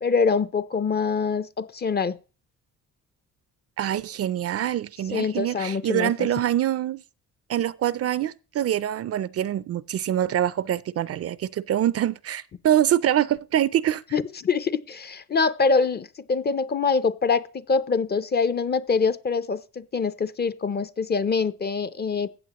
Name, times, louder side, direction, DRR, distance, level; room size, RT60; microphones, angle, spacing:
voice 1, 0.0-2.2 5.1-6.3 14.1-22.3, left 5 dB, 35° left, 0.6 m, -24 dB
voice 2, 3.8-7.0 7.5-14.0, right 11 dB, 50° right, 0.4 m, -25 dB
14.5 x 8.1 x 2.9 m
cardioid pair, 100°, 30 cm